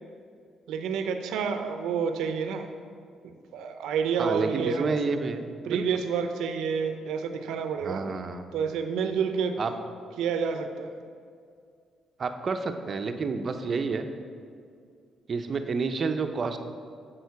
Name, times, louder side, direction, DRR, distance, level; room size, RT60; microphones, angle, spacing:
voice 1, 0.7-2.7 3.2-4.9 5.6-8.0 8.5-9.6 10.2-10.9, right 6 dB, 85° right, 7 dB, 0.6 m, -29 dB
voice 2, 4.2-5.8 7.8-8.5 9.6-9.7 12.2-14.0 15.3-16.6, right 4 dB, 45° right, 7 dB, 0.6 m, -29 dB
7.5 x 6.4 x 4.7 m, 2.3 s
cardioid pair, 90°, 0 cm